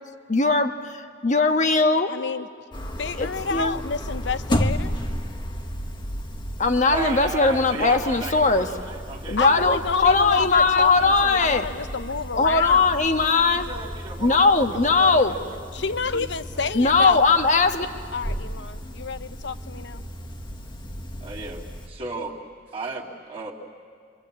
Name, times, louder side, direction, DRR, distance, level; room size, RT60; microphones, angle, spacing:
voice 1, 0.3-2.1 3.2-3.8 6.6-8.7 9.3-11.7 12.3-13.7 14.2-15.3 16.7-17.9, left 3 dB, 40° left, 7 dB, 1.3 m, -20 dB
voice 2, 2.1-2.5 3.0-5.0 9.4-12.9 15.7-17.2 18.1-20.0, left 5 dB, 65° left, 12 dB, 0.8 m, -29 dB
sound 1, 2.7-21.9, equal, 25° left, 1.3 m, -33 dB
voice 3, 6.9-9.7 13.6-15.6 16.1-16.3 21.2-22.4 22.7-23.5, right 3 dB, 30° right, -5 dB, 2.4 m, -34 dB
27.0 x 24.5 x 8.6 m, 2.2 s
head